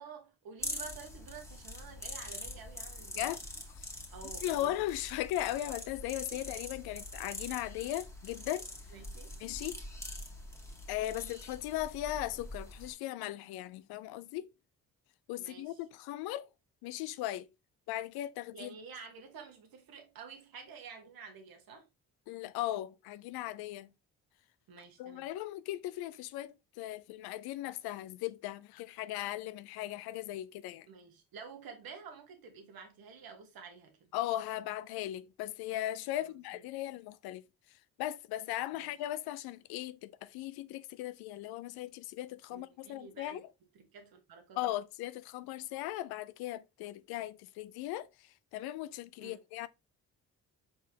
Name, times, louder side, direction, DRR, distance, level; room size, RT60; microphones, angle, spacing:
voice 1, 0.0-3.3 4.1-4.8 6.3-6.4 8.9-9.4 15.4-15.8 18.5-21.9 24.7-25.3 30.9-34.1 36.1-36.3 38.7-38.9 42.5-43.4 43.7-44.6 49.2-49.4, right 5 dB, 70° right, 1.4 m, -50 dB
sound 1, 0.6-12.9, left 1 dB, 10° left, 1.6 m, -44 dB
voice 2, 4.4-8.7 9.4-9.8 10.9-14.5 15.3-16.5 16.8-17.5 17.9-18.8 22.3-23.9 25.0-30.9 34.1-43.5 44.6-49.7, left 14 dB, 85° left, 0.5 m, -38 dB
4.6 x 3.9 x 2.8 m
supercardioid pair, 55°, 36 cm